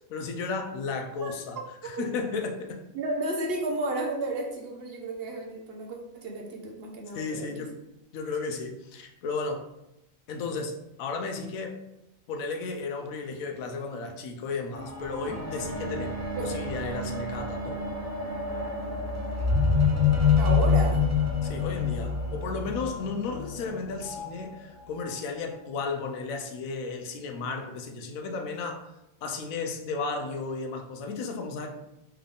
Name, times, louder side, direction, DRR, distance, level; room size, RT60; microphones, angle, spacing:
voice 1, 0.1-2.7 7.1-7.8 8.1-9.7 10.3-11.8 12.3-16.1 16.4-17.8 21.4-28.9 29.2-31.7, left 4 dB, 80° left, 3 dB, 1.1 m, -34 dB
voice 2, 2.9-7.5 16.3-16.5 20.4-21.0, right 2 dB, 50° right, 1 dB, 0.9 m, -32 dB
sound 1, 14.7-24.3 25.1-25.2, left 4 dB, 25° right, 0.4 m, -27 dB
3.6 x 3.4 x 3.6 m, 0.87 s
omnidirectional pair, 1.4 m